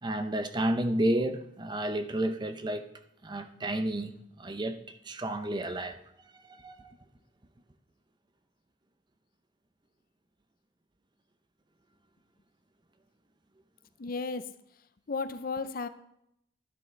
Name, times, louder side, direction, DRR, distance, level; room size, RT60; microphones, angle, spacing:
voice 1, 0.0-2.9 3.2-6.0 6.3-6.9, right 1 dB, 20° right, 0.6 m, -31 dB
voice 2, 14.0-14.5 15.1-15.9, left 4 dB, 45° left, 0.5 m, -34 dB
12.0 x 10.0 x 3.3 m
head